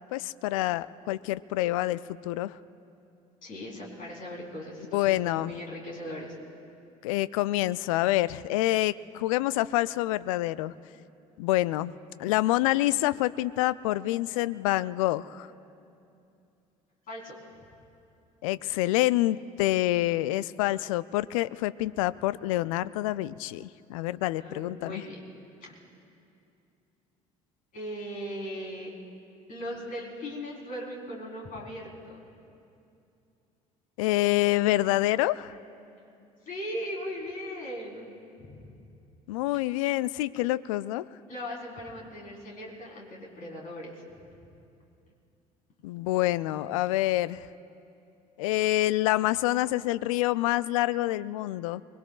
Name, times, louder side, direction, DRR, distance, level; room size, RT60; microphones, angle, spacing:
voice 1, 0.1-2.6 4.9-5.5 7.0-10.7 11.4-11.9 12.2-15.5 18.4-25.0 34.0-35.6 39.3-41.1 45.8-47.5 48.4-51.8, left 16 dB, 70° left, 18 dB, 0.4 m, -27 dB
voice 2, 3.4-6.4 17.1-17.4 24.4-25.2 25.6-25.8 27.7-28.9 29.5-32.2 36.2-38.1 38.4-38.7 41.3-44.0, equal, 50° left, -2 dB, 4.0 m, -38 dB
24.5 x 21.5 x 2.4 m, 2.6 s
figure-of-eight pair, 55°, 18 cm